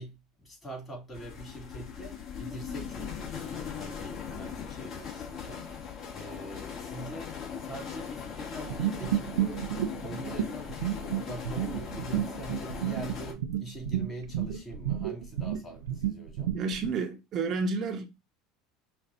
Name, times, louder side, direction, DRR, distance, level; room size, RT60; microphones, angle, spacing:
voice 1, 0.0-9.7 10.0-10.8 11.1-16.6, right 1 dB, 25° left, 2.5 m, -43 dB
sound 1, 1.1-13.3, left 7 dB, 50° left, 1.8 m, -40 dB
sound 2, 8.7-16.9, right 11 dB, 85° right, 0.5 m, -32 dB
voice 2, 16.5-18.1, right 4 dB, 45° right, 0.8 m, -30 dB
5.2 x 2.5 x 2.6 m
hypercardioid pair, 85°, 0 cm